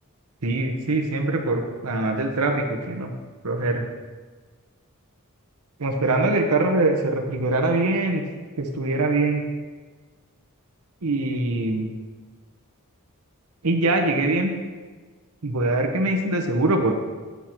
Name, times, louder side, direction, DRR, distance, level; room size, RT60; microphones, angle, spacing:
voice 1, 0.4-3.1 3.4-3.8 5.8-8.2 8.6-9.4 11.0-11.9 13.6-14.5 15.4-16.9, right 2 dB, 80° right, 3 dB, 0.9 m, -23 dB
8.2 x 8.0 x 4.5 m, 1.4 s
head